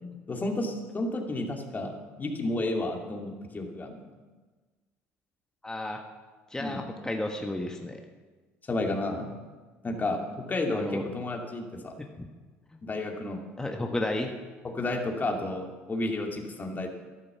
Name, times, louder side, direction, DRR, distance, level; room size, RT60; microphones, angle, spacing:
voice 1, 0.0-4.1 6.6-6.8 8.7-9.3 9.8-11.9 12.8-13.4 14.6-16.9, left 2 dB, 30° left, 2 dB, 2.5 m, -32 dB
voice 2, 5.6-6.0 6.5-8.0 10.7-11.0 12.0-12.3 13.6-14.4, left 1 dB, 10° left, 2 dB, 1.4 m, -32 dB
12.0 x 11.0 x 7.2 m, 1.3 s
supercardioid pair, 75°, 6 cm